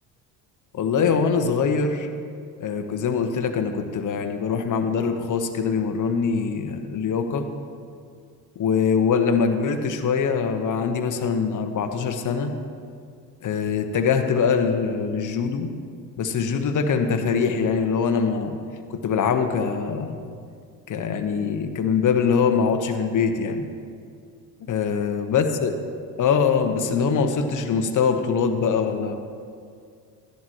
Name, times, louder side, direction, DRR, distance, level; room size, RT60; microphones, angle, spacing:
voice 1, 0.7-2.1 2.6-7.5 8.6-12.5 13.4-15.7 16.2-18.5 18.9-20.2 20.9-23.7 24.6-25.7 26.2-29.1, left 6 dB, 40° left, 7 dB, 1.1 m, -23 dB
14.0 x 11.0 x 3.1 m, 2.2 s
hypercardioid pair, 70°, 47 cm